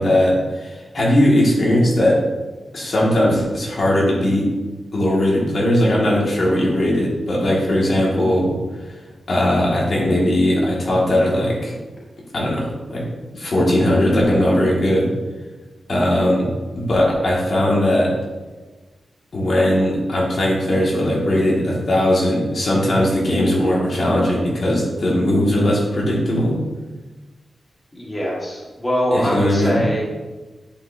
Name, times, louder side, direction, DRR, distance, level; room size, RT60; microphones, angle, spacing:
voice 1, 0.0-2.2 2.7-4.5 4.9-8.5 9.3-11.8 12.3-13.1 13.3-15.1 15.9-16.5 16.8-18.1 19.3-26.6 29.1-29.8, left 1 dB, 55° left, -4 dB, 2.2 m, -18 dB
voice 2, 27.9-30.0, equal, 20° left, -5 dB, 1.9 m, -22 dB
9.9 x 5.6 x 2.8 m, 1.2 s
cardioid pair, 75°, 0 cm